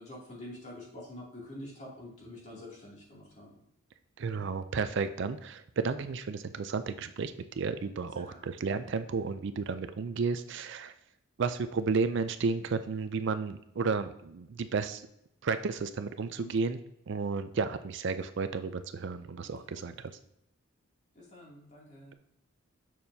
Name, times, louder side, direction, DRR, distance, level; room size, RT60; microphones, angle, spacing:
voice 1, 0.0-3.6 8.1-8.4 16.4-16.6 19.4-19.8 21.1-22.1, left 1 dB, 35° left, -5 dB, 2.6 m, -47 dB
voice 2, 4.2-10.9 11.4-15.1 15.4-16.8 17.1-20.1, right 4 dB, 55° right, 11 dB, 0.4 m, -32 dB
7.6 x 6.7 x 2.7 m, 0.77 s
head